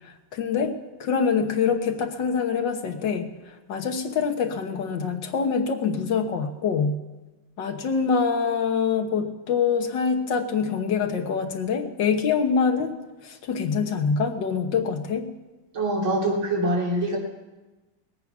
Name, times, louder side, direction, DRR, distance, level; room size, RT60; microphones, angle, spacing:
voice 1, 0.0-0.7 1.0-7.0 7.6-13.0 13.2-15.3, left 6 dB, 65° left, 6 dB, 1.8 m, -25 dB
voice 2, 15.7-17.2, right 1 dB, 85° right, -2 dB, 4.2 m, -24 dB
21.0 x 8.8 x 6.0 m, 1.1 s
omnidirectional pair, 2.1 m